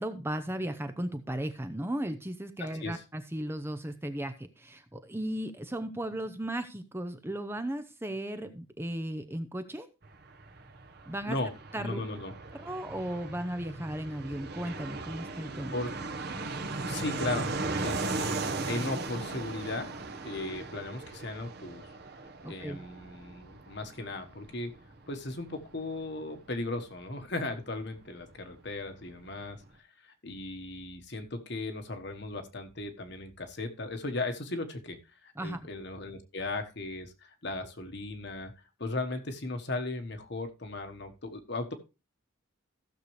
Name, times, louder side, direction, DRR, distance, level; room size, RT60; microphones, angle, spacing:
voice 1, 0.0-9.9 11.1-11.4 11.7-12.0 12.6-15.8 22.4-22.8 35.4-35.7, right 1 dB, 10° right, 9 dB, 0.6 m, -36 dB
voice 2, 2.6-3.0 11.3-12.3 15.7-15.9 16.8-17.5 17.8-19.9 20.2-21.8 22.4-24.7 25.1-29.6 30.2-37.1 37.4-38.5 38.8-41.7, left 2 dB, 55° left, 6 dB, 1.3 m, -37 dB
Fixed-wing aircraft airplane, 10.0-28.4 28.7-28.8 29.0-29.7, right 3 dB, 50° right, 1.1 m, -38 dB
15.5 x 6.7 x 3.2 m, 0.28 s
head